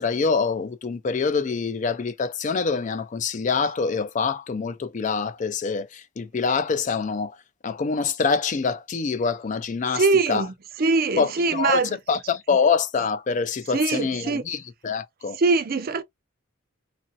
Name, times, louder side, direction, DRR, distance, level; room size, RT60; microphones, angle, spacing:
voice 1, 0.0-7.4 7.6-10.5 11.2-11.8 12.1-15.4, left 5 dB, 40° left, 0.4 m, -25 dB
voice 2, 9.9-12.0 13.7-14.4 15.4-16.0, right 3 dB, 50° right, 0.5 m, -23 dB
3.0 x 2.5 x 2.6 m
head